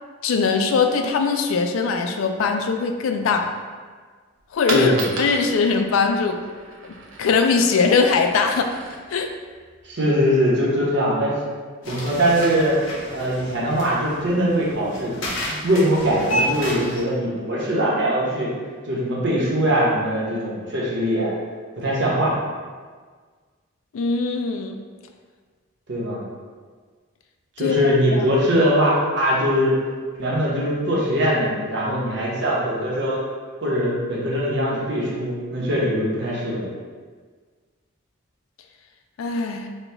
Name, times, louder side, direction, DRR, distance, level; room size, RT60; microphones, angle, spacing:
voice 1, 0.2-3.5 4.5-4.9 5.2-6.4 7.2-8.7 9.1-9.3 23.9-24.8 27.6-27.8 28.1-28.3 39.2-39.7, left 4 dB, 80° left, 5 dB, 0.4 m, -21 dB
Coin (dropping), 4.3-10.3, right 2 dB, 90° right, 0.7 m, -36 dB
voice 2, 4.7-5.0 9.8-11.3 11.9-12.8 13.1-15.2 15.4-18.5 18.8-21.3 21.8-22.3 25.9-26.2 27.6-29.7 30.2-33.2 33.6-36.6, equal, 60° right, -5 dB, 1.0 m, -21 dB
sound 1, 11.8-17.0, equal, 65° left, 0.9 m, -30 dB
4.3 x 2.3 x 3.3 m, 1.6 s
head